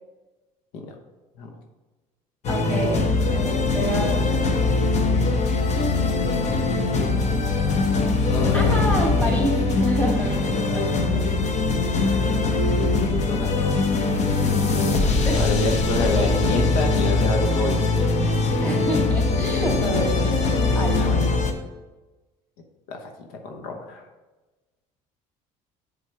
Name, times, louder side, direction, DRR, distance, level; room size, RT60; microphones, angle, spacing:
sound 1, 2.4-21.5, left 3 dB, 45° left, 0.9 m, -22 dB
voice 1, 2.5-4.7 8.5-11.4 15.2-15.7 18.6-21.2, equal, 10° left, -2 dB, 2.1 m, -29 dB
voice 2, 8.3-9.0 12.9-13.8 14.1-14.3 15.4-18.4 21.0-21.3 22.9-24.0, left 3 dB, 80° left, 3 dB, 0.9 m, -29 dB
7.5 x 3.9 x 4.7 m, 1.2 s
supercardioid pair, 95°, 16 cm